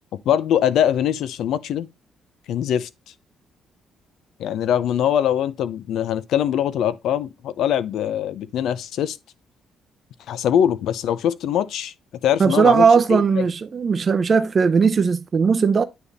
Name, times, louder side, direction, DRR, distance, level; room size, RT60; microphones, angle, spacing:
voice 1, 0.3-1.9 2.5-2.9 4.4-9.2 10.3-11.9 12.2-13.4, left 10 dB, 80° left, 0.6 m, -22 dB
voice 2, 12.4-15.8, right 5 dB, 40° right, 0.6 m, -18 dB
9.5 x 3.5 x 4.0 m
cardioid pair, 90°, 0 cm